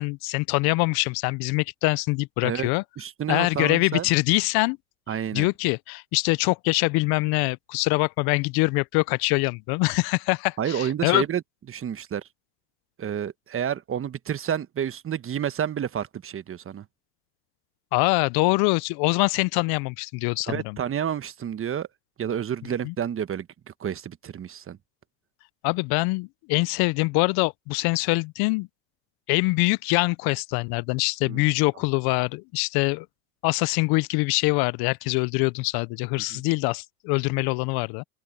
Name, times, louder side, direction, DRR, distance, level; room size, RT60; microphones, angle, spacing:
voice 1, 0.0-2.8 3.3-4.8 5.3-11.2 17.9-20.8 22.8-22.9 25.6-28.7 29.3-33.1 33.4-38.0, left 26 dB, 50° left, 0.7 m, -24 dB
voice 2, 3.0-4.1 5.1-5.5 10.6-11.4 11.7-12.3 13.0-16.8 20.5-21.9 22.2-24.8 31.2-31.4 36.3-36.4, right 9 dB, 25° right, 1.2 m, -30 dB
hypercardioid pair, 90°, 47 cm